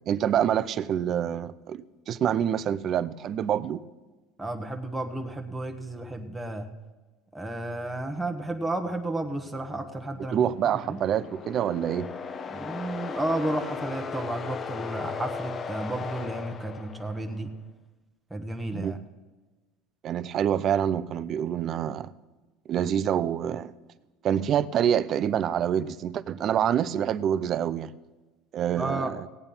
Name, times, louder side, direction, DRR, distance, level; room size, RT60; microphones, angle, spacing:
voice 1, 0.1-3.8 10.3-12.1 18.7-18.9 20.0-22.1 22.7-23.7 24.2-27.9 28.5-29.3, right 9 dB, 40° right, 17 dB, 0.5 m, -26 dB
voice 2, 4.4-6.7 7.3-10.4 10.8-11.0 12.5-17.5 18.3-19.0 28.8-29.2, right 1 dB, 5° right, 3 dB, 1.1 m, -32 dB
sound 1, 10.4-17.4, left 5 dB, 30° left, 0.8 m, -37 dB
16.5 x 8.9 x 5.5 m, 1.2 s
supercardioid pair, 125°, 0 cm